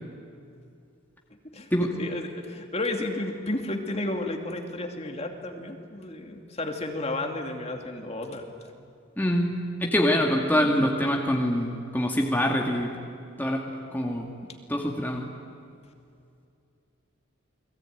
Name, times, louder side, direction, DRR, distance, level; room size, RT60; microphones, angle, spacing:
voice 1, 1.5-8.5, left 2 dB, 30° left, 3 dB, 2.5 m, -32 dB
voice 2, 9.2-12.9 13.4-13.6 13.9-14.3 14.7-15.3, equal, 10° left, 0 dB, 2.1 m, -25 dB
29.5 x 21.0 x 9.3 m, 2.5 s
head